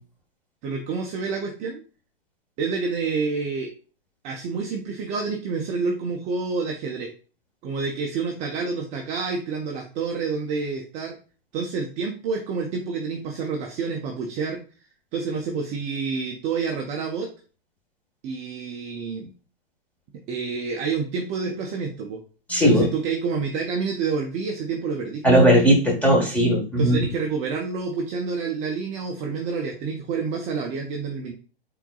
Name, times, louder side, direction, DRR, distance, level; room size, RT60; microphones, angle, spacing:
voice 1, 0.6-1.8 2.6-3.7 4.2-7.1 7.6-11.2 11.5-14.6 15.1-17.3 18.2-19.3 20.3-22.2 22.6-25.2 26.8-31.3, right 5 dB, 25° right, 2 dB, 0.5 m, -28 dB
voice 2, 22.5-22.9 25.2-27.0, equal, 5° left, -2 dB, 1.4 m, -17 dB
5.8 x 3.8 x 2.3 m, 0.37 s
figure-of-eight pair, 120°, 29 cm